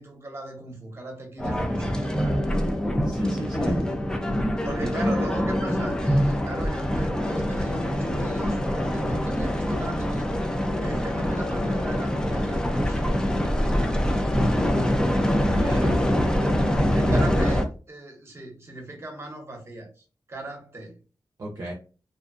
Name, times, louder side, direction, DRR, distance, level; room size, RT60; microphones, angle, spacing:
voice 1, 0.0-2.6 3.7-4.0 4.6-10.3 10.8-15.1 15.8-16.1 16.9-21.0, right 1 dB, 35° right, 0.9 m, -38 dB
sound 1, 1.4-17.6, equal, 10° left, 0.4 m, -24 dB
voice 2, 3.0-3.7 4.6-4.9 15.5-15.9 17.0-17.3 21.4-21.7, right 1 dB, 55° right, 0.5 m, -33 dB
2.6 x 2.2 x 2.4 m
wide cardioid pair, 100°, 8 cm